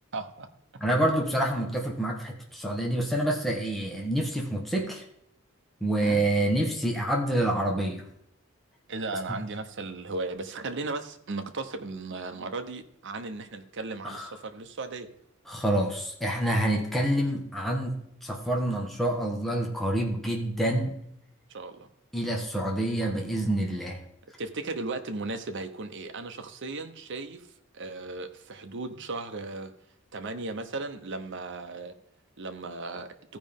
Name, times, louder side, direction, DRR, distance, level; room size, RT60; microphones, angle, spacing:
voice 1, 0.1-0.5 6.0-6.2 8.9-15.1 21.5-21.9 24.4-27.5 27.7-29.7 30.1-31.9 32.4-33.1, right 3 dB, 60° right, 7 dB, 0.9 m, -36 dB
voice 2, 0.8-5.0 5.8-8.1 14.0-14.3 15.5-21.0 22.1-24.0, right 1 dB, ahead, -1 dB, 1.3 m, -27 dB
15.0 x 5.2 x 3.6 m, 0.74 s
head